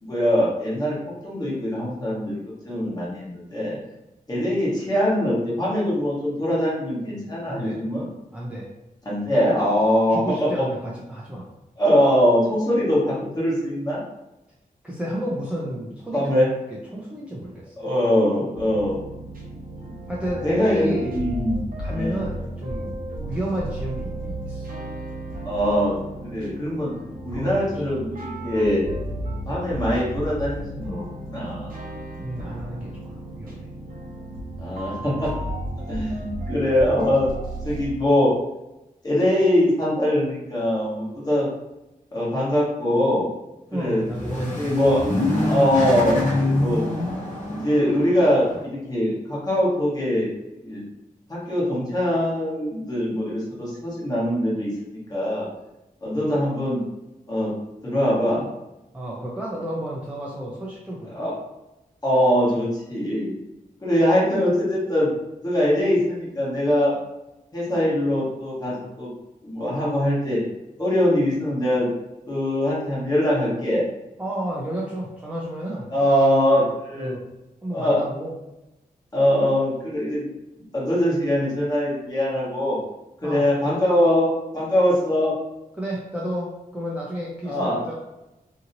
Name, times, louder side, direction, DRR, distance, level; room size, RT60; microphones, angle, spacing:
voice 1, 0.0-1.0 1.2-2.4 2.6-3.8 4.3-8.1 9.0-10.5 11.8-14.0 16.1-16.5 17.8-19.0 20.4-21.6 21.9-22.2 25.4-25.9 26.3-26.9 27.2-28.8 29.4-31.7 34.6-35.3 35.9-37.3 37.6-38.3 39.0-41.5 42.1-43.3 43.7-44.0 44.3-45.0 45.5-46.8 47.5-50.3 50.6-50.8 51.3-55.5 56.0-56.8 57.3-57.5 57.8-58.5 61.1-61.3 62.0-63.3 63.8-65.1 65.4-66.9 67.5-69.1 69.4-70.4 70.8-71.9 72.3-73.8 75.9-77.1 77.7-78.0 79.1-80.3 80.7-82.8 83.2-84.3 84.5-85.3 87.4-87.8, equal, 25° left, -7 dB, 1.1 m, -22 dB
voice 2, 7.5-7.8 8.3-8.7 10.1-11.5 14.8-16.4 16.9-17.7 20.1-21.2 21.8-24.8 27.3-27.8 32.2-33.7 43.7-44.8 58.9-61.3 74.2-76.1 76.9-77.2 77.6-78.3 83.2-83.4 85.8-87.9, right 1 dB, 10° right, -6 dB, 0.5 m, -31 dB
sound 1, 18.5-37.9, right 1 dB, 70° right, 0.8 m, -34 dB
sound 2, 43.9-48.6, left 2 dB, 55° left, 0.8 m, -25 dB
2.8 x 2.7 x 2.6 m, 0.93 s
wide cardioid pair, 140°, 15 cm